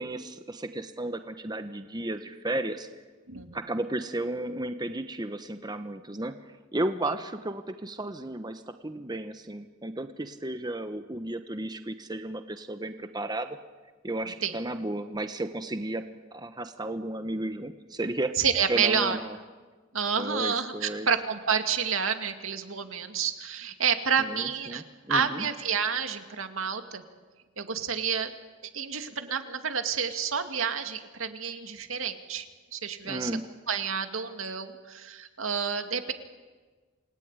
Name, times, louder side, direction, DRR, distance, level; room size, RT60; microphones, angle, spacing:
voice 1, 0.0-2.9 3.5-13.6 14.0-16.1 16.3-18.3 18.7-19.4 20.2-21.1 24.2-25.4 33.0-33.4, right 1 dB, 20° right, 8 dB, 1.1 m, -33 dB
voice 2, 3.3-3.6 14.4-14.6 18.4-19.2 19.9-24.8 25.1-27.0 27.6-28.3 28.7-32.5 32.7-33.3 33.7-36.1, right 6 dB, 80° right, 7 dB, 2.2 m, -29 dB
28.0 x 19.0 x 9.8 m, 1.4 s
head